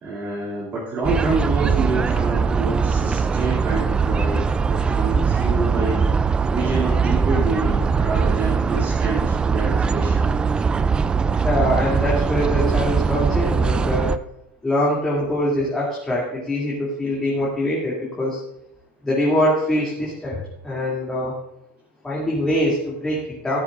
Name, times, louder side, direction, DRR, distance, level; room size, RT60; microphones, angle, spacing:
voice 1, 0.0-6.0 6.5-10.3, right 3 dB, 30° right, -6 dB, 2.6 m, -27 dB
sound 1, 1.0-14.2, right 5 dB, 15° right, 0.3 m, -21 dB
voice 2, 11.3-14.1 14.6-18.4 19.0-20.4 20.6-21.3 22.0-23.6, left 1 dB, 10° left, -6 dB, 2.6 m, -23 dB
14.0 x 12.0 x 2.5 m, 0.82 s
supercardioid pair, 145°, 6 cm